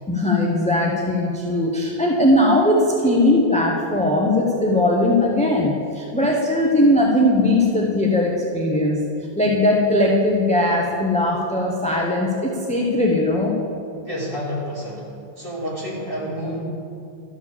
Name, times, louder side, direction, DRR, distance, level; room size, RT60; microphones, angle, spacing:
voice 1, 0.1-9.1 9.3-13.5, left 1 dB, 5° left, -2 dB, 0.8 m, -19 dB
voice 2, 14.0-15.1 15.4-16.6, equal, 35° right, -7 dB, 2.8 m, -29 dB
12.5 x 5.0 x 7.1 m, 2.6 s
omnidirectional pair, 1.1 m